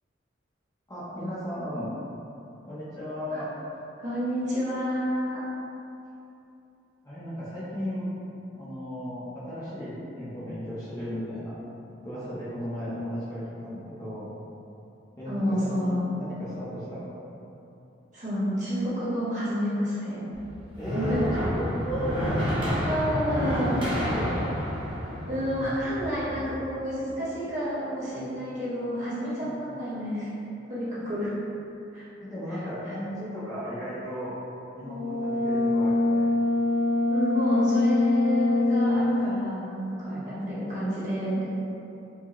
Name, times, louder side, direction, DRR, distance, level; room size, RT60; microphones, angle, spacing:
voice 1, 0.9-1.9 2.7-3.5 7.0-8.1 8.5-11.5 12.0-14.3 15.2-17.1 20.8-24.3 29.4-29.7 31.0-31.1 32.2-34.3 34.8-36.2 40.1-40.4, equal, 20° left, -11 dB, 0.6 m, -35 dB
voice 2, 4.0-5.4 15.3-16.0 18.1-20.2 20.9-21.2 22.9-23.8 25.2-30.3 30.7-31.3 31.9-32.1 32.5-32.9 37.1-41.4, equal, 40° right, -11 dB, 1.2 m, -29 dB
sound 1, 20.3-26.5, equal, 25° right, 0.8 m, -30 dB
Brass instrument, 34.8-39.2, left 2 dB, 65° right, 1.4 m, -24 dB
4.6 x 2.1 x 2.9 m, 2.8 s
head